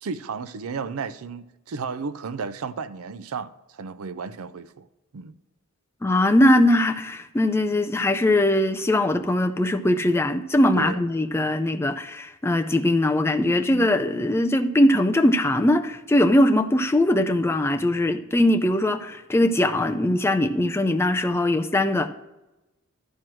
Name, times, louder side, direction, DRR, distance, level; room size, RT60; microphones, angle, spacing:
voice 1, 0.0-4.9 5.1-5.3 10.8-11.0 13.7-14.0, right 5 dB, 80° right, 0.5 m, -33 dB
voice 2, 6.0-22.1, left 1 dB, 10° left, 0.4 m, -21 dB
12.0 x 4.6 x 6.1 m
head